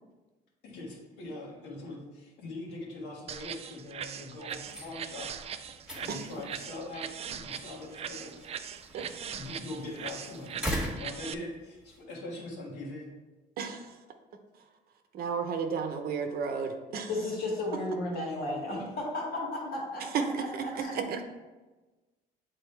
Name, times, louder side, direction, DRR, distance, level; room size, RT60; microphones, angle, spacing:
voice 1, 0.6-5.3 5.6-8.5 9.3-13.1 18.7-18.9, left 2 dB, 85° left, -2 dB, 1.7 m, -42 dB
sound 1, 3.3-11.3, right 8 dB, 40° right, 0.4 m, -41 dB
sound 2, 4.5-12.0, equal, 5° right, 1.5 m, -41 dB
voice 2, 13.6-13.9 15.1-17.1 20.1-21.2, right 5 dB, 65° right, 6 dB, 0.8 m, -32 dB
voice 3, 17.1-20.3 20.6-21.0, left 2 dB, 65° left, -2 dB, 2.1 m, -34 dB
8.0 x 3.9 x 3.3 m, 1.2 s
cardioid pair, 110°, 17 cm